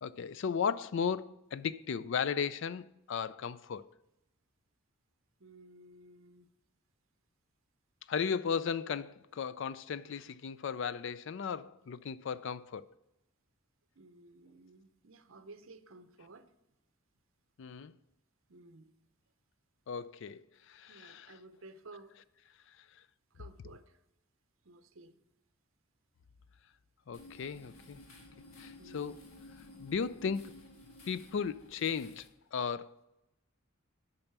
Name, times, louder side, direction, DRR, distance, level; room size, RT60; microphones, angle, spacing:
voice 1, 0.0-3.9 8.1-12.9 17.6-17.9 19.9-21.4 27.1-28.0 28.6-29.2 29.8-30.6 31.1-32.3 32.5-33.0, left 6 dB, 60° left, 0.4 m, -36 dB
voice 2, 5.4-6.5 14.0-16.5 18.5-18.9 20.9-22.2 23.3-24.0 24.6-25.2 28.8-29.2, right 2 dB, 65° right, 0.8 m, -55 dB
sound 1, 27.1-32.3, left 1 dB, 80° left, 1.6 m, -54 dB
8.8 x 5.6 x 5.9 m
head